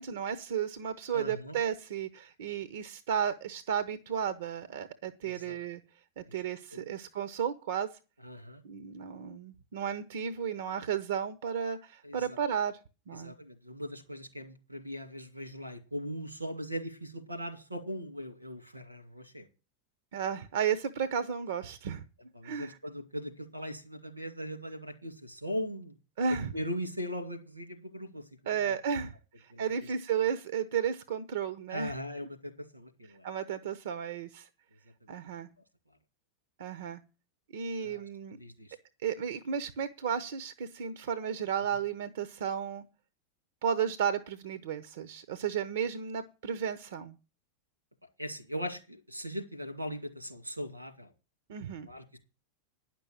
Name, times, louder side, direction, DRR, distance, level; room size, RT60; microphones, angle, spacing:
voice 1, 0.0-5.8 6.2-7.9 8.6-12.8 13.1-13.3 20.1-22.0 22.4-22.8 26.2-26.5 28.5-31.9 33.2-34.5 35.1-35.5 36.6-37.0 37.5-38.4 39.0-42.8 43.6-47.2 51.5-51.9, right 7 dB, 60° right, 0.7 m, -33 dB
voice 2, 1.1-1.6 5.2-5.6 6.3-6.4 6.7-6.8 8.2-8.6 12.0-12.4 13.1-19.5 22.3-26.0 26.5-28.7 29.5-29.6 31.7-33.3 35.0-35.1 37.8-38.1 38.4-38.8 41.6-41.8 48.2-51.1 51.8-52.2, equal, 85° right, 2.2 m, -40 dB
10.0 x 6.1 x 8.5 m
figure-of-eight pair, 90°, 0 cm